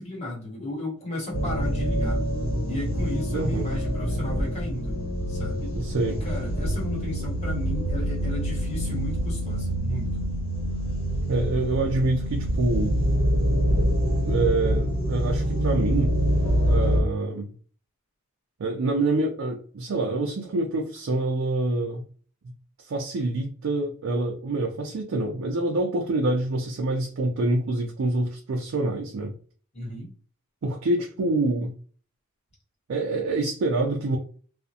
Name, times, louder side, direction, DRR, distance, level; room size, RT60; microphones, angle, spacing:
voice 1, 0.0-2.2 2.7-5.0 5.3-5.7 6.1-10.3 29.7-30.1, left 1 dB, 30° left, 1.1 m, -35 dB
sound 1, 1.3-17.0, equal, 70° left, 1.1 m, -25 dB
voice 2, 3.3-3.7 5.7-6.2 11.3-13.0 14.3-16.1 16.7-17.5 18.6-22.0 22.8-29.3 30.6-31.7 32.9-34.2, right 2 dB, 65° right, 0.4 m, -26 dB
2.4 x 2.0 x 2.7 m
head